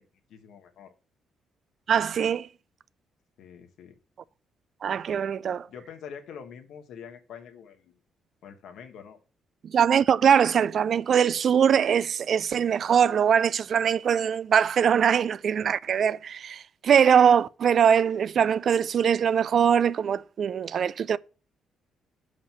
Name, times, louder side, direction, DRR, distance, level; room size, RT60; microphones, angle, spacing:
voice 1, 0.3-0.9 3.4-4.0 5.7-8.0 8.4-9.2, left 7 dB, 80° left, 1.2 m, -45 dB
voice 2, 1.9-2.5 4.8-5.7 9.6-21.2, right 8 dB, 55° right, 0.3 m, -22 dB
5.8 x 5.1 x 5.6 m
cardioid pair, 90°, 0 cm